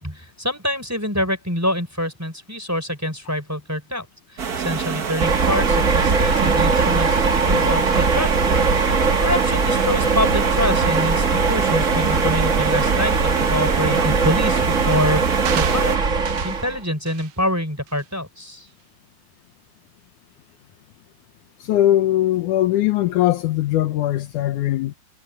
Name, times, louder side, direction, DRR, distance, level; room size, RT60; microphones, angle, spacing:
voice 1, 0.0-8.5 8.8-15.2 15.5-18.7, left 1 dB, 5° right, 4.3 m, -26 dB
sound 1, 4.4-16.0, right 7 dB, 55° right, 1.0 m, -27 dB
sound 2, 5.2-16.8, right 4 dB, 35° right, 1.3 m, -20 dB
sound 3, 15.5-16.7 17.1-17.3 17.9-18.0, right 10 dB, 75° right, 1.2 m, -31 dB
voice 2, 21.6-24.9, left 13 dB, 75° left, 2.3 m, -20 dB
omnidirectional pair, 3.7 m